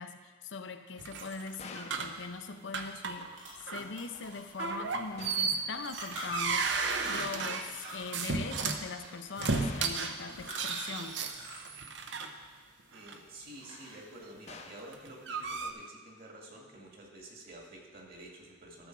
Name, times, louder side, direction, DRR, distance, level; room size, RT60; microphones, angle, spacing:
voice 1, 0.0-3.3 3.7-6.7 7.0-11.3, left 4 dB, 75° left, 8 dB, 0.6 m, -41 dB
sound 1, 1.0-2.2 2.7-3.3 3.6-3.9 4.6-8.8 9.4-12.3 13.0-13.2 14.8-15.7, right 4 dB, 70° right, 0.8 m, -34 dB
sound 2, 1.6-2.1 5.2-5.7 9.6-10.1 14.5-14.9, left 4 dB, 35° left, 0.7 m, -48 dB
sound 3, 2.7-2.8 3.0-7.4 7.7-11.7 12.0-13.2 13.5-14.1, right 1 dB, 85° right, 3.7 m, -46 dB
voice 2, 12.9-18.9, right 1 dB, 50° right, 0 dB, 2.1 m, -50 dB
13.5 x 7.1 x 4.6 m, 1.5 s
head